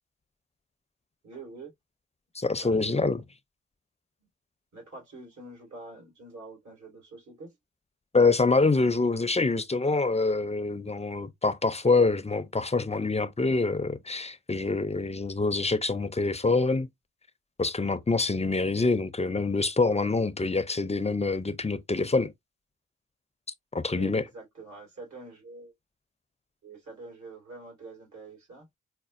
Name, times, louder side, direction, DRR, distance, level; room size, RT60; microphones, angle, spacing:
voice 1, 1.2-1.7 2.6-3.3 4.7-7.5 23.9-25.7 26.6-28.6, right 3 dB, 70° right, 2.3 m, -45 dB
voice 2, 2.4-3.2 8.1-16.9 17.6-22.3 23.7-24.2, left 3 dB, 20° left, 0.5 m, -25 dB
5.0 x 2.1 x 2.5 m
cardioid pair, 50°, 30 cm